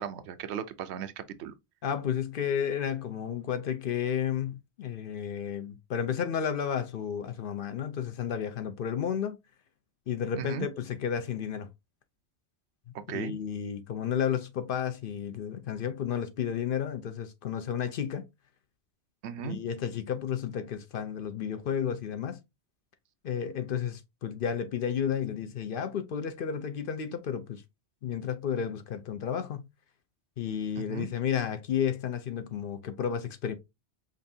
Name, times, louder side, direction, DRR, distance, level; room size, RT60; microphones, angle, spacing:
voice 1, 0.0-1.5 10.4-10.7 12.9-13.3 19.2-19.6 30.8-31.1, right 8 dB, 80° right, 0.9 m, -37 dB
voice 2, 1.8-9.4 10.1-11.7 13.1-18.2 19.4-22.4 23.2-27.6 28.0-29.6 30.4-33.5, left 8 dB, 60° left, 0.7 m, -32 dB
5.3 x 2.5 x 2.6 m
omnidirectional pair, 1.1 m